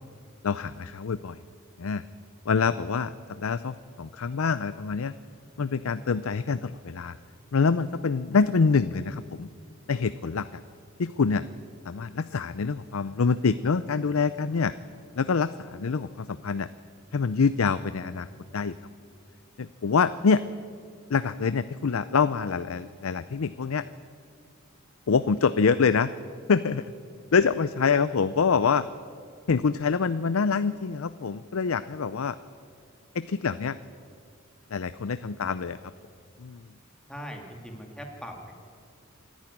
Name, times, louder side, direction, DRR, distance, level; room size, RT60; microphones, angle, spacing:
voice 1, 0.4-1.4 1.8-2.0 2.5-5.1 5.6-7.1 7.5-9.5 9.9-10.6 11.0-11.5 11.9-14.7 15.2-16.7 17.1-18.3 18.5-18.7 19.6-20.4 21.1-23.9 25.1-26.1 26.5-26.9 27.3-28.8 29.5-32.4 33.1-33.8 34.7-35.8 36.4-36.6, left 5 dB, 75° left, 14 dB, 0.5 m, -25 dB
voice 2, 37.1-38.5, equal, 5° left, 2 dB, 2.6 m, -40 dB
26.5 x 10.5 x 10.0 m, 2.1 s
head